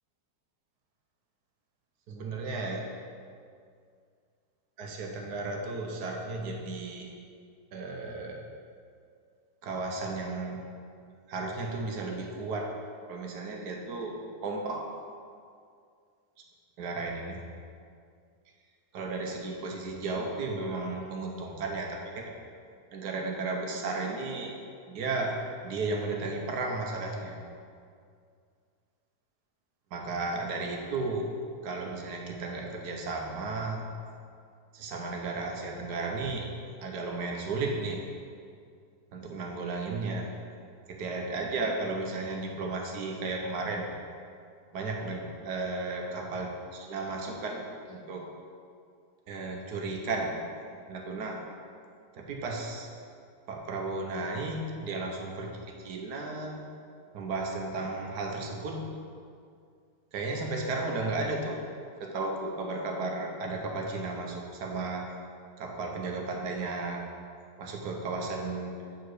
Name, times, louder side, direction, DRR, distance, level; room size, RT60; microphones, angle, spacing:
voice 1, 2.1-2.9 4.8-7.1 7.7-8.5 9.6-10.6 11.3-12.7 13.1-14.2 14.4-14.9 16.8-17.4 18.9-22.3 22.9-24.5 24.9-25.4 25.6-27.4 29.9-31.3 31.6-33.9 34.7-36.5 36.8-38.0 39.1-40.3 40.9-43.9 44.7-47.6 47.9-48.3 49.3-50.3 50.9-51.4 52.1-52.9 53.5-56.6 57.1-58.9 60.1-61.6 62.0-65.1 65.6-67.0 67.6-68.7, right 3 dB, 75° right, 1 dB, 1.4 m, -34 dB
7.9 x 4.7 x 4.8 m, 2.3 s
omnidirectional pair, 1.8 m